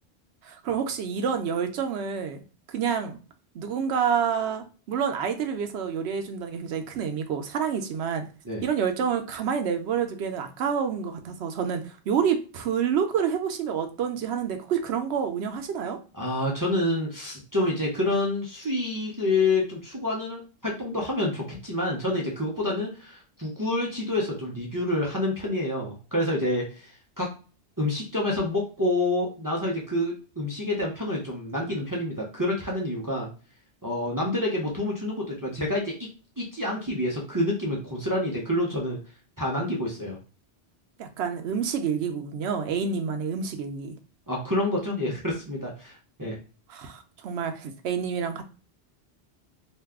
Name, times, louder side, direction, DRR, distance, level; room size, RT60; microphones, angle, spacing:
voice 1, 0.4-2.4 2.7-3.2 3.5-8.2 8.6-16.0 41.0-44.0 46.7-48.4, right 7 dB, 75° right, 6 dB, 0.8 m, -28 dB
voice 2, 16.1-27.3 27.8-33.3 33.8-35.9 36.4-39.0 39.4-40.2 44.3-46.4, left 1 dB, 25° right, -3 dB, 0.5 m, -28 dB
2.6 x 2.2 x 3.5 m, 0.36 s
omnidirectional pair, 1.1 m